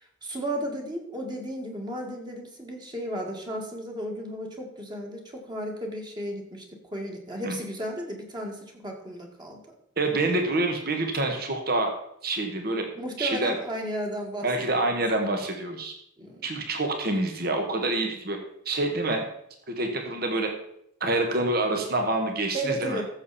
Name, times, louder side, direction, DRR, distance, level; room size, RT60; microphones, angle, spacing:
voice 1, 0.2-5.2 5.5-6.6 6.9-9.6 12.9-14.7 16.2-16.5 22.5-23.0, right 1 dB, 25° right, 1 dB, 2.0 m, -34 dB
voice 2, 10.0-11.9 12.2-12.8 13.2-13.5 14.4-15.9 16.4-18.4 18.6-19.2 19.7-20.5 21.0-23.0, right 2 dB, 55° right, 4 dB, 1.5 m, -27 dB
14.5 x 7.3 x 4.2 m, 0.74 s
head